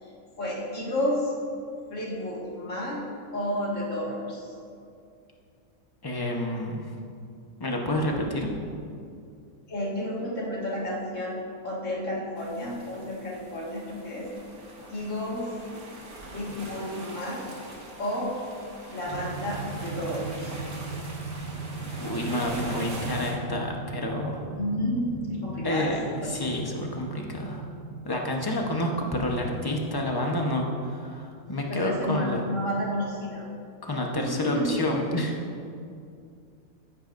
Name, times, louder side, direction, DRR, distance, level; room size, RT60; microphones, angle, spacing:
voice 1, 0.4-1.3 1.9-3.0 3.3-4.5 9.7-14.3 14.9-15.4 16.3-17.4 18.0-18.3 18.9-20.5 24.6-26.3 31.7-33.5 34.2-34.7, left 1 dB, 55° left, -5 dB, 2.3 m, -31 dB
voice 2, 6.0-6.9 7.6-8.5 22.0-24.4 25.6-27.7 28.0-32.4 33.8-35.3, left 1 dB, 20° left, 0 dB, 0.8 m, -29 dB
sound 1, 12.4-23.3, right 1 dB, 80° right, 2.1 m, -42 dB
sound 2, 19.1-29.4, right 3 dB, 50° right, 2.9 m, -38 dB
15.5 x 8.7 x 2.6 m, 2.4 s
omnidirectional pair, 1.5 m